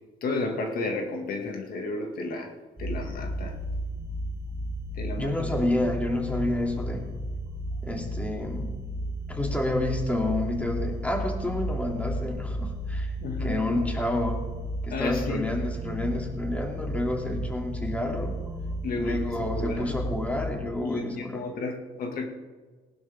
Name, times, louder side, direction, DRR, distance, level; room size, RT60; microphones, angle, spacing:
voice 1, 0.2-2.5 2.8-3.6 4.9-5.6 13.2-13.7 14.9-15.5 18.8-20.0 20.8-22.3, left 3 dB, 60° left, 2 dB, 2.1 m, -32 dB
sound 1, 2.8-20.5, equal, 10° right, 2.6 m, -33 dB
voice 2, 5.2-7.1 7.8-8.8 9.3-13.1 13.4-14.5 14.8-18.4 19.0-21.4, left 1 dB, 10° left, 1 dB, 2.7 m, -29 dB
20.0 x 11.5 x 3.6 m, 1.4 s
cardioid pair, 110°, 17 cm